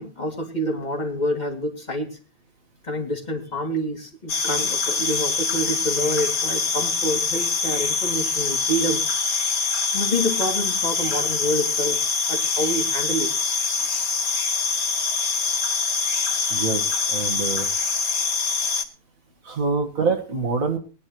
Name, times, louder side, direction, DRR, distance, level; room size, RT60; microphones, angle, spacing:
voice 1, 0.0-2.2 2.8-9.0 9.9-12.0 12.3-13.3 13.7-13.9 16.3-16.5, equal, 30° left, 0 dB, 2.6 m, -27 dB
sound 1, 4.3-18.8, left 5 dB, 70° left, 1.8 m, -24 dB
voice 2, 16.5-17.7 19.4-20.8, right 4 dB, 65° right, 4 dB, 2.0 m, -25 dB
19.5 x 10.5 x 3.0 m, 0.37 s
omnidirectional pair, 1.6 m